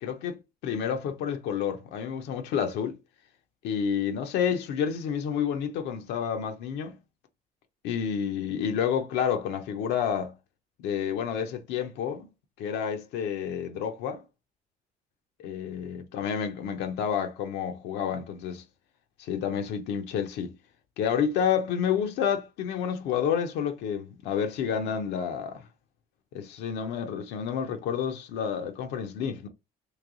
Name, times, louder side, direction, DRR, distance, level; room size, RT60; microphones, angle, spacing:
voice 1, 0.0-3.0 3.6-7.0 7.8-10.3 10.8-12.3 12.6-14.2 15.4-18.6 19.2-20.5 21.0-25.6 26.3-29.5, left 8 dB, 85° left, 0.7 m, -29 dB
3.2 x 2.6 x 3.7 m
cardioid pair, 110°, 17 cm